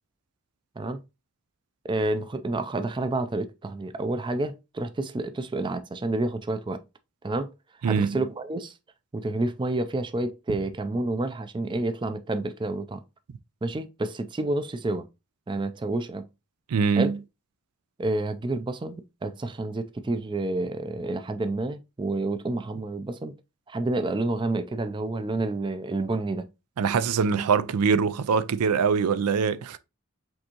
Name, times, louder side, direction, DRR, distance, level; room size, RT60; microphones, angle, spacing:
voice 1, 1.8-6.8 7.2-7.5 7.8-8.7 9.1-13.0 13.6-15.1 15.5-16.3 17.0-17.2 18.0-23.3 23.7-26.5, right 2 dB, 20° right, 0.4 m, -29 dB
voice 2, 7.8-8.2 16.7-17.1 26.8-29.8, right 5 dB, 80° right, 0.4 m, -23 dB
5.2 x 3.5 x 2.9 m
head